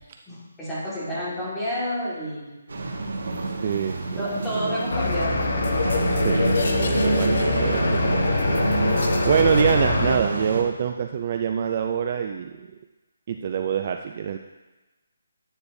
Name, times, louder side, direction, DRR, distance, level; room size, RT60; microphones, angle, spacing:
voice 1, 0.3-2.5 4.2-5.7, equal, 5° left, -9 dB, 1.9 m, -30 dB
sound 1, 2.7-10.6, right 2 dB, 70° right, 1.7 m, -27 dB
voice 2, 3.6-4.2 6.1-12.7 13.3-14.4, right 8 dB, 30° right, 5 dB, 0.3 m, -26 dB
sound 2, 4.9-10.2, left 3 dB, 55° left, 1.1 m, -24 dB
9.9 x 9.6 x 2.7 m, 1.1 s
hypercardioid pair, 170°, 0 cm